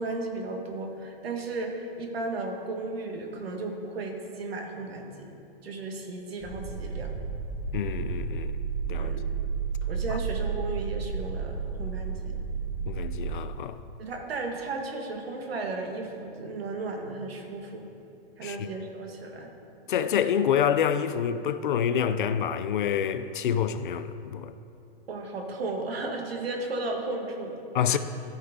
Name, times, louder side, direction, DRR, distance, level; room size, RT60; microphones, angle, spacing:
voice 1, 0.0-5.3 5.6-7.1 9.0-9.2 9.9-12.4 14.0-17.9 18.4-19.5 25.1-27.6 27.9-28.0, right 2 dB, 80° right, 3 dB, 1.6 m, -34 dB
sound 1, 6.4-13.4, right 6 dB, 5° right, 0.6 m, -32 dB
voice 2, 7.7-8.6 8.9-9.1 12.9-13.8 18.4-18.6 19.9-24.5 27.7-28.0, left 8 dB, 55° left, 11 dB, 0.5 m, -27 dB
14.5 x 5.7 x 3.6 m, 2.6 s
hypercardioid pair, 165°, 30 cm